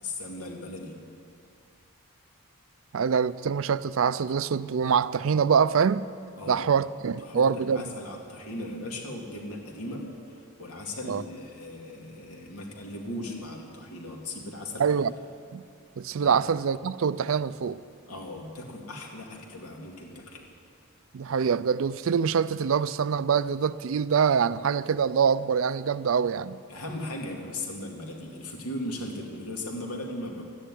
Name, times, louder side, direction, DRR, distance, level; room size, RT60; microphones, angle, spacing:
voice 1, 0.0-1.0 6.4-6.7 7.2-10.0 10.6-15.0 16.2-16.4 18.1-20.4 26.7-30.4, left 1 dB, 85° left, 2.4 m, -37 dB
voice 2, 2.9-6.0 6.5-7.8 11.1-11.2 14.8-15.1 15.5-15.6 16.0-17.8 21.1-26.6, right 6 dB, 65° right, 0.4 m, -25 dB
13.0 x 10.0 x 9.9 m
head